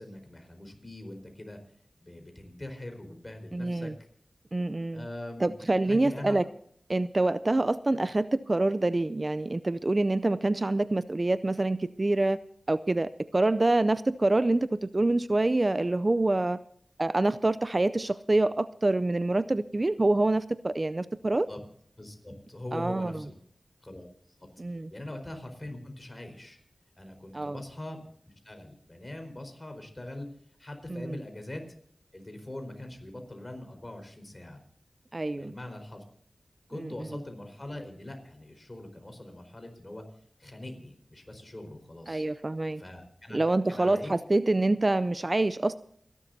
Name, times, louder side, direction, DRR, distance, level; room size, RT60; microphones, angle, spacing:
voice 1, 0.0-1.6 2.0-3.9 4.9-5.5 5.8-6.4 21.5-21.6 22.0-23.3 23.8-24.1 24.4-24.5 24.9-26.6 27.0-28.0 28.4-30.3 30.6-31.6 32.1-34.6 35.3-36.0 36.7-40.0 40.4-42.3 42.8-43.4 43.7-44.1, left 1 dB, 30° left, 5 dB, 4.5 m, -42 dB
voice 2, 3.5-3.9 4.5-5.1 5.4-6.4 6.9-12.4 12.7-16.6 17.0-21.5 22.7-23.2 24.6-24.9 27.3-27.6 30.9-31.2 35.1-35.5 36.7-37.2 42.1-42.8 43.3-45.8, right 2 dB, 35° right, 14 dB, 0.5 m, -26 dB
28.0 x 12.0 x 2.7 m, 0.63 s
wide cardioid pair, 55°, 0 cm